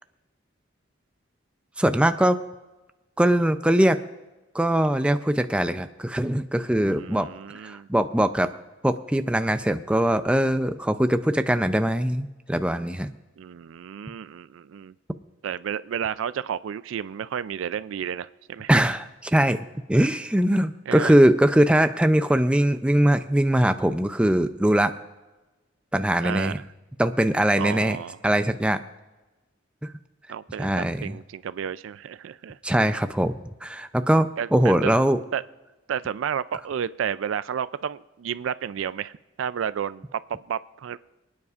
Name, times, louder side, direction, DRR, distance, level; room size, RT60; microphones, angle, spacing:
voice 1, 1.8-2.4 3.2-4.0 4.5-7.3 7.6-8.5 8.8-13.1 18.7-24.9 25.9-26.6 27.0-28.0 28.2-28.8 30.6-31.2 32.6-33.3 33.6-35.2, right 1 dB, 5° right, 9 dB, 0.4 m, -21 dB
voice 2, 6.9-7.9 13.4-14.9 15.4-18.7 20.9-21.1 26.2-26.6 27.6-28.2 30.3-32.6 34.4-34.9 35.3-35.4 35.9-41.0, right 8 dB, 85° right, 16 dB, 0.3 m, -31 dB
28.5 x 9.6 x 2.4 m, 1.1 s
head